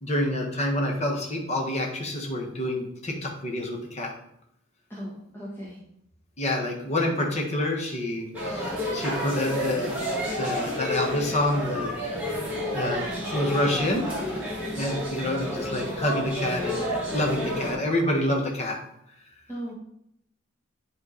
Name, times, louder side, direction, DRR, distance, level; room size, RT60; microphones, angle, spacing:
voice 1, 0.0-4.1 6.4-11.9 12.3-14.0 14.5-16.8 17.1-18.8, left 1 dB, 35° left, 0 dB, 1.4 m, -28 dB
voice 2, 4.9-5.8 19.5-19.7, equal, 10° left, -7 dB, 1.5 m, -37 dB
sound 1, 8.3-17.7, equal, 10° right, 2.7 m, -30 dB
10.5 x 3.7 x 4.1 m, 0.75 s
head